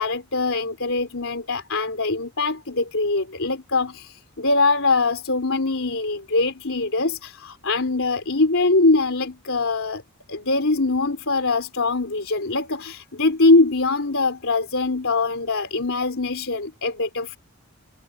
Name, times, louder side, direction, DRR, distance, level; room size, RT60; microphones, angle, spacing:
voice 1, 0.0-4.0 4.4-10.0 10.3-17.4, left 3 dB, 70° left, 3.3 m, -22 dB
head